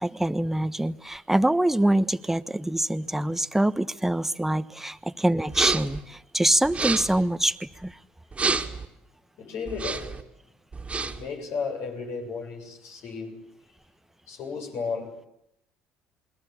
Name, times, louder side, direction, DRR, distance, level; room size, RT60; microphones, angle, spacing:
voice 1, 0.0-8.0, right 1 dB, 5° right, 1.2 m, -25 dB
sound 1, 5.5-6.0 6.6-7.2 8.3-8.9 9.7-10.2 10.7-11.3, right 4 dB, 25° right, 2.4 m, -29 dB
voice 2, 9.4-10.2 11.0-13.4 14.3-15.3, left 5 dB, 65° left, 7.6 m, -34 dB
28.5 x 21.5 x 8.7 m
hypercardioid pair, 75°, 5 cm